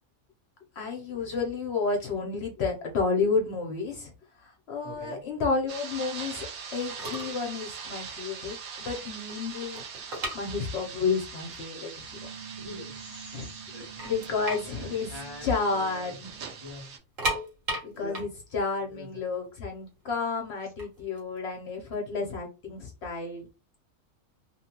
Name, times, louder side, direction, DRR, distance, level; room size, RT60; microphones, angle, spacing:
voice 1, 0.8-4.1 4.4-12.1 13.3-13.5 14.0-15.1 15.4-16.3 17.8-23.4, left 4 dB, 60° left, 0.8 m, -31 dB
voice 2, 4.8-5.2 12.4-13.8 14.7-16.2 16.6-16.9 17.8-18.3 18.7-19.2, left 1 dB, 30° right, 0.9 m, -44 dB
sound 1, 5.7-17.0, right 6 dB, 85° right, 1.2 m, -42 dB
sound 2, 6.7-6.8 7.0-7.4 7.7-7.9 8.4-8.5 8.8-11.1 11.3-11.4 12.1-12.2 12.5-13.3 13.6-13.7 14.0-16.0 16.2-16.4 16.9-19.9 20.6-22.3, right 1 dB, 70° right, 1.5 m, -35 dB
sound 3, 11.9-16.7, right 6 dB, 50° right, 1.3 m, -47 dB
2.8 x 2.2 x 2.8 m
omnidirectional pair, 1.4 m